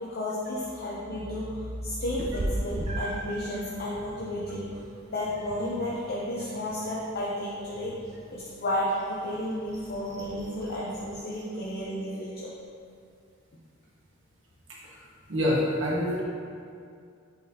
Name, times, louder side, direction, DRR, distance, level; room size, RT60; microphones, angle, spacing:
voice 1, 0.0-4.7 5.1-7.9 8.3-12.5, left 1 dB, 50° left, -7 dB, 0.8 m, -32 dB
Meow, 2.2-11.8, right 1 dB, 35° right, 0.6 m, -39 dB
voice 2, 15.3-16.2, left 1 dB, 65° right, -5 dB, 1.3 m, -25 dB
8.0 x 4.1 x 2.8 m, 2.3 s
head